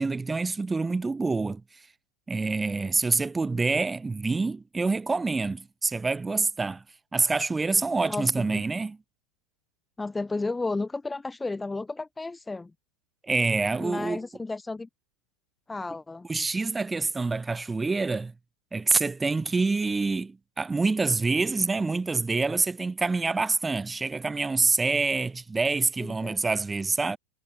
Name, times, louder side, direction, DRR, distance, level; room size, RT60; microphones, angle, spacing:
voice 1, 0.0-1.6 2.3-6.8 7.1-9.0 13.3-14.2 16.3-18.3 18.7-27.2, right 3 dB, 10° right, 1.3 m, -26 dB
voice 2, 8.1-8.6 10.0-12.7 13.8-14.9 15.7-16.3 26.0-26.4, left 3 dB, 10° left, 0.8 m, -33 dB
figure-of-eight pair, 90°, 0 cm